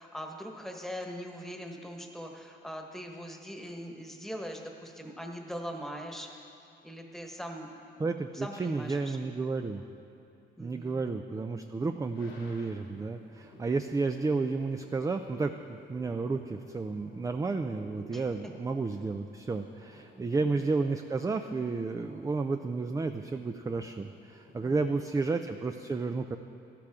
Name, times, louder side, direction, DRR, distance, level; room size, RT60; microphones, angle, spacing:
voice 1, 0.0-6.3 6.8-7.7 8.3-9.4 10.6-11.0 18.1-18.3 20.1-20.6, equal, ahead, 2 dB, 1.3 m, -41 dB
voice 2, 8.0-9.8 10.6-26.4, right 3 dB, 15° right, 7 dB, 0.4 m, -32 dB
sound 1, 12.0-25.2, left 1 dB, 90° left, 2.2 m, -56 dB
13.0 x 11.5 x 3.6 m, 2.6 s
cardioid pair, 90°, 20 cm